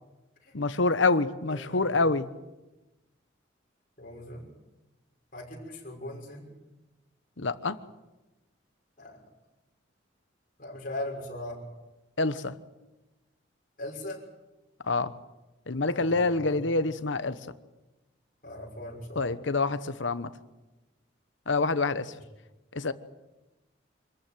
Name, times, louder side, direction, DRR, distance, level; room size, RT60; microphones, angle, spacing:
voice 1, 0.5-2.3 7.4-7.8 12.2-12.5 14.9-15.1 15.7-17.4 19.2-20.3 21.5-22.1 22.7-22.9, left 3 dB, 80° left, 13 dB, 1.1 m, -26 dB
voice 2, 1.5-2.0 4.0-4.4 5.3-6.5 9.0-9.2 10.6-11.6 13.8-14.2 15.9-16.8 18.4-19.3 22.1-22.2, left 1 dB, 45° left, -1 dB, 6.1 m, -39 dB
25.5 x 14.5 x 9.3 m, 1.1 s
head